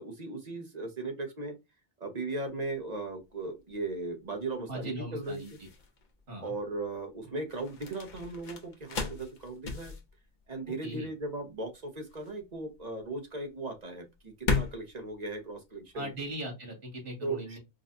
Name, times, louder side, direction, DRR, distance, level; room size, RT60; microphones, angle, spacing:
voice 1, 0.0-1.6 2.0-5.4 6.4-9.9 10.5-16.1 17.2-17.6, right 2 dB, 40° right, 4 dB, 0.9 m, -37 dB
sound 1, 2.5-16.3, left 4 dB, 45° left, 0.8 m, -38 dB
voice 2, 4.7-5.7 6.3-6.5 10.8-11.1 15.9-17.6, right 1 dB, 85° right, 0 dB, 2.4 m, -39 dB
5.1 x 2.3 x 2.6 m, 0.23 s
omnidirectional pair, 1.2 m